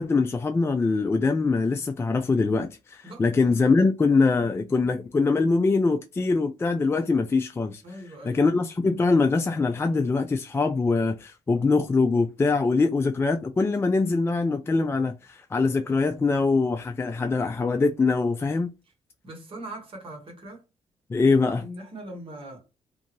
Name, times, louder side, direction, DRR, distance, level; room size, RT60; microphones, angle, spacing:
voice 1, 0.0-7.8 8.2-18.7 21.1-21.6, left 4 dB, 20° left, 0.4 m, -23 dB
voice 2, 7.8-8.5 19.2-20.6 21.6-22.6, right 1 dB, 55° right, 1.4 m, -40 dB
2.6 x 2.5 x 2.9 m
cardioid pair, 90°, 11 cm